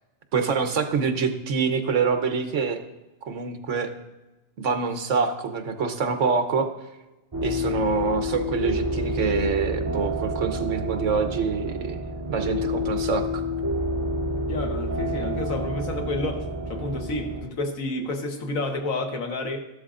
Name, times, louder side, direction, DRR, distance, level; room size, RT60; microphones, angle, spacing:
voice 1, 0.3-2.8 3.2-3.9 4.6-6.7 7.4-13.4, right 5 dB, 70° right, 8 dB, 1.2 m, -26 dB
sound 1, 7.3-17.4, left 1 dB, 20° right, 3.4 m, -29 dB
voice 2, 14.5-19.6, left 2 dB, 90° left, 4 dB, 1.6 m, -30 dB
14.0 x 12.0 x 2.5 m, 1.1 s
omnidirectional pair, 1.4 m